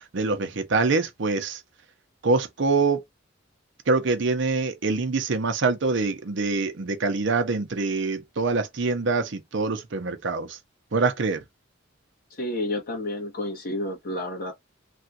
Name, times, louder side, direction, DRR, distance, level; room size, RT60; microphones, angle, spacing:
voice 1, 0.0-1.6 2.2-3.0 3.9-10.6 10.9-11.4, right 3 dB, 65° right, 0.7 m, -25 dB
voice 2, 12.4-14.5, left 1 dB, 50° left, 1.5 m, -30 dB
3.4 x 2.4 x 2.7 m
head